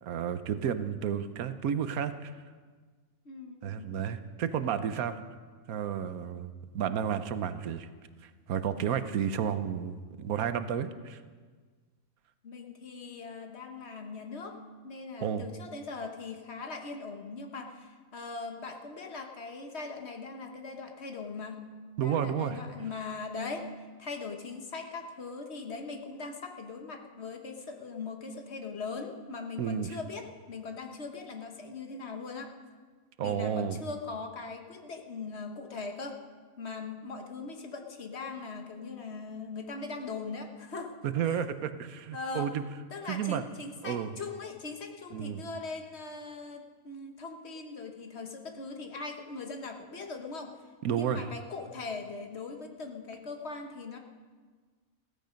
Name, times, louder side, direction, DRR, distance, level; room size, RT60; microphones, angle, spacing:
voice 1, 0.0-2.3 3.6-5.2 5.7-7.9 8.2-11.2 15.2-15.4 22.0-22.6 29.6-30.0 33.2-33.8 41.0-42.6 43.1-43.4 43.8-44.1 45.1-45.4 50.8-51.3, right 8 dB, 85° right, 11 dB, 1.2 m, -31 dB
voice 2, 3.2-4.0 12.4-14.6 14.8-21.6 22.0-23.7 24.0-32.5 33.2-36.2 36.6-40.9 41.2-41.4 42.1-42.5 42.9-50.6 50.9-54.0, left 4 dB, 50° left, 4 dB, 1.5 m, -40 dB
15.5 x 14.5 x 5.2 m, 1.5 s
omnidirectional pair, 1.5 m